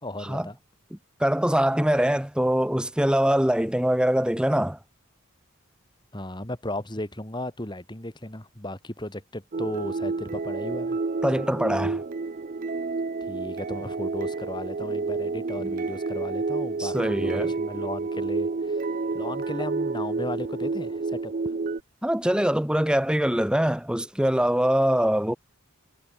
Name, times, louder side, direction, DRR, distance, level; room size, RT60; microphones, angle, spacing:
voice 1, 0.0-0.6 6.1-11.0 13.2-18.9 19.1-21.5, left 1 dB, 20° left, 3.5 m, -35 dB
voice 2, 1.2-4.8 11.2-12.0 15.6-15.7 16.8-17.5 22.0-25.4, equal, 5° right, 0.9 m, -23 dB
sound 1, 9.5-21.8, right 3 dB, 40° right, 0.5 m, -29 dB
head